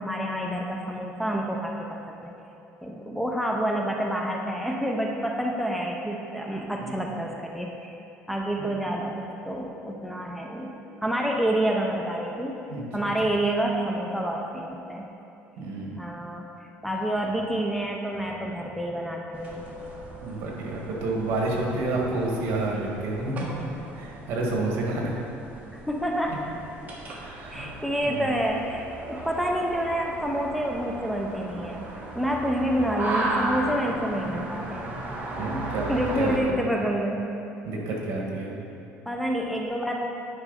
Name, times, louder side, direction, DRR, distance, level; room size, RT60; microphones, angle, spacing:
voice 1, 0.0-2.3 2.8-7.9 8.3-15.1 16.0-16.5 16.8-19.7 25.9-26.3 27.5-35.0 35.9-37.3 39.1-40.1, right 1 dB, ahead, 0 dB, 0.5 m, -28 dB
voice 2, 12.7-13.1 15.6-16.0 20.2-23.5 23.9-25.1 26.3-26.4 27.2-27.7 28.0-28.3 35.4-36.4 37.6-38.6, right 2 dB, 65° right, -1 dB, 1.7 m, -29 dB
sound 1, 19.3-36.4, right 1 dB, 35° right, 1.2 m, -36 dB
9.9 x 5.3 x 4.0 m, 2.8 s
cardioid pair, 155°, 5 cm